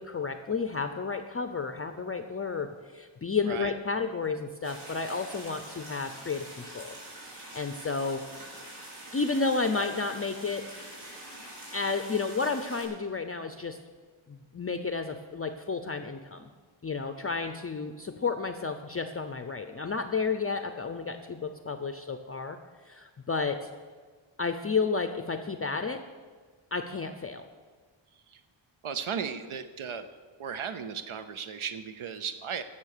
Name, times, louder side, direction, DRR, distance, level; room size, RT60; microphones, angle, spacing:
voice 1, 0.0-7.0 7.3-8.2 9.1-10.6 11.7-13.8 14.3-16.5 16.8-22.6 22.9-23.7 24.4-26.0 26.7-27.5, left 4 dB, 30° left, 8 dB, 0.5 m, -31 dB
sound 1, 4.6-12.8, right 1 dB, 55° right, 4.9 m, -45 dB
voice 2, 28.8-30.1 30.4-32.6, right 7 dB, 80° right, 10 dB, 0.8 m, -35 dB
16.0 x 6.9 x 6.6 m, 1.5 s
wide cardioid pair, 180°, 49 cm